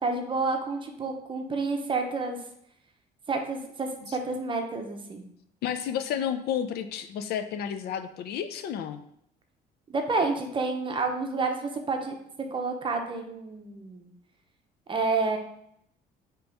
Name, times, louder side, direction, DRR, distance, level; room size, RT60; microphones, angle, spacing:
voice 1, 0.0-2.4 3.3-5.2 9.9-12.2 12.5-14.1 14.9-15.4, right 3 dB, 30° right, 4 dB, 0.7 m, -29 dB
voice 2, 5.6-9.0, left 9 dB, 70° left, 10 dB, 0.5 m, -31 dB
5.2 x 3.0 x 3.4 m, 0.72 s
cardioid pair, 110°, 17 cm